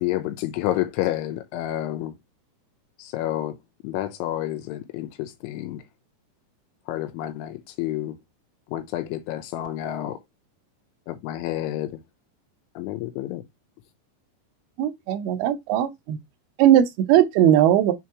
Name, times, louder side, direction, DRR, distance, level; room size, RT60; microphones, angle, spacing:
voice 1, 0.0-2.2 3.0-3.6 3.8-5.8 6.9-8.2 8.7-10.2 11.1-12.0 12.8-13.4, left 14 dB, 85° left, 3.1 m, -29 dB
voice 2, 14.8-16.2 16.6-17.9, right 11 dB, 90° right, 2.2 m, -19 dB
6.9 x 2.9 x 4.6 m
omnidirectional pair, 5.5 m